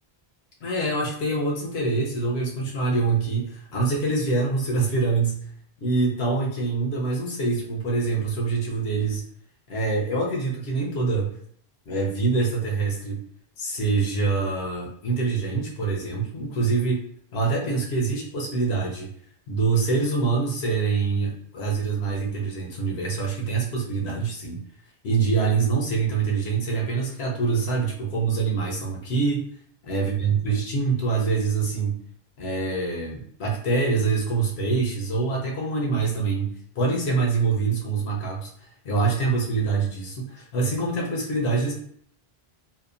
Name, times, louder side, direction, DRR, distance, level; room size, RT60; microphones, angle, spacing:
voice 1, 0.6-5.5 5.8-9.2 9.7-11.3 11.9-13.2 13.6-17.0 17.3-19.1 19.5-24.6 25.0-29.4 29.9-32.0 32.4-38.5 38.8-41.7, right 4 dB, 85° left, -1 dB, 1.0 m, -25 dB
2.8 x 2.1 x 2.4 m, 0.62 s
omnidirectional pair, 1.1 m